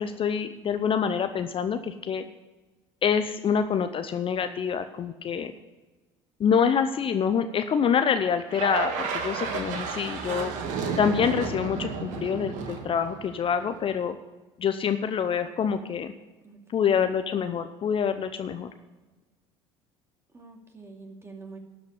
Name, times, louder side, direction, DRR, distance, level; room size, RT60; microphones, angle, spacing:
voice 1, 0.0-2.2 3.0-5.5 6.4-10.5 11.0-14.2 14.6-16.1 16.7-18.7, left 7 dB, 35° left, 10 dB, 0.6 m, -26 dB
sound 1, 8.5-13.8, right 5 dB, 60° right, 1.6 m, -32 dB
voice 2, 16.4-17.1 20.3-21.6, right 3 dB, 15° right, 2 dB, 2.4 m, -46 dB
12.0 x 5.2 x 8.2 m, 1.2 s
hypercardioid pair, 65°, 15 cm